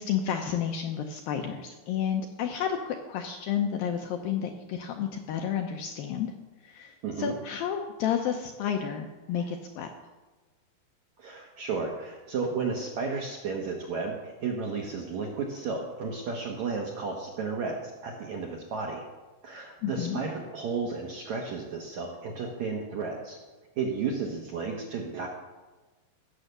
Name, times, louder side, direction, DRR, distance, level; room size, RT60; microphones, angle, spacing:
voice 1, 0.0-6.3 6.6-9.9 19.8-20.2, left 8 dB, 75° left, 4 dB, 2.2 m, -31 dB
voice 2, 11.2-19.0 19.4-23.4 23.8-25.3, right 4 dB, 65° right, 0 dB, 1.8 m, -33 dB
17.0 x 7.4 x 6.7 m, 1.2 s
omnidirectional pair, 5.0 m